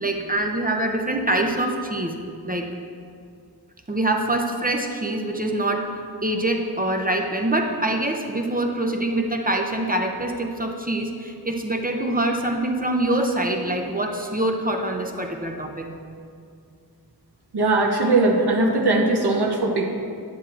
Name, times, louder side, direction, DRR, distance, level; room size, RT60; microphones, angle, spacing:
voice 1, 0.0-2.2 2.4-2.7 3.9-5.9 6.2-15.9, right 1 dB, 25° right, 2 dB, 0.6 m, -24 dB
voice 2, 17.5-19.9, right 2 dB, 85° right, 1 dB, 0.8 m, -20 dB
9.9 x 7.3 x 2.4 m, 2.3 s
wide cardioid pair, 65°, 39 cm